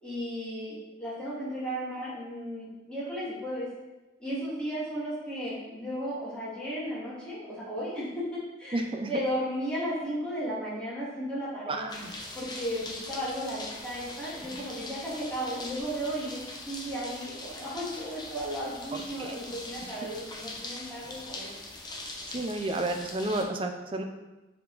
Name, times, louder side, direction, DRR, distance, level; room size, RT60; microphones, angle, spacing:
voice 1, 0.0-3.7 4.2-11.9 12.3-16.4 16.7-21.6, equal, 5° left, -9 dB, 1.7 m, -35 dB
voice 2, 8.7-9.1 11.7-12.1 19.2-19.4 22.3-24.0, right 2 dB, 30° right, 4 dB, 0.5 m, -31 dB
sound 1, 11.9-23.4, left 2 dB, 25° left, 0.8 m, -42 dB
6.9 x 3.7 x 3.9 m, 1.1 s
head